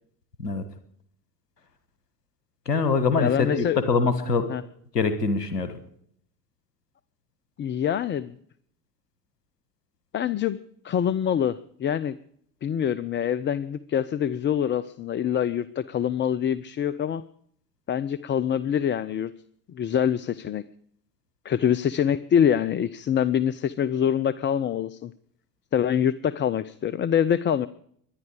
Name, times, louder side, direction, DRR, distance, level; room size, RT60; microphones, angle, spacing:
voice 1, 2.6-4.5 4.9-5.7, left 4 dB, 80° left, 11 dB, 1.5 m, -23 dB
voice 2, 3.2-3.8 4.5-4.6 7.6-8.4 10.1-10.6 10.8-12.1 12.6-17.2 17.9-19.3 19.7-20.6 21.4-25.1 25.7-27.7, left 9 dB, 25° left, 15 dB, 0.6 m, -25 dB
23.0 x 10.5 x 5.0 m, 0.65 s
figure-of-eight pair, 60°, 47 cm